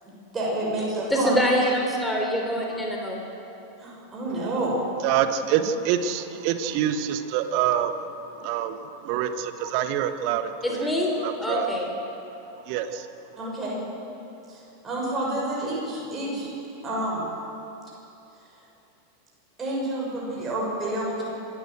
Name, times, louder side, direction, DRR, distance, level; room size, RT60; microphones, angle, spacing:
voice 1, 0.0-1.3 3.8-4.8 13.4-13.8 14.5-16.5 16.8-17.2 19.6-21.3, right 1 dB, 20° right, -5 dB, 6.6 m, -29 dB
voice 2, 1.1-3.2 10.6-11.1 11.4-11.9, equal, 5° left, 0 dB, 3.6 m, -25 dB
voice 3, 5.0-8.0 8.4-10.8 11.2-11.7 12.7-13.1, right 9 dB, 45° right, 9 dB, 1.3 m, -26 dB
26.0 x 13.5 x 7.9 m, 2.8 s
figure-of-eight pair, 90°, 0 cm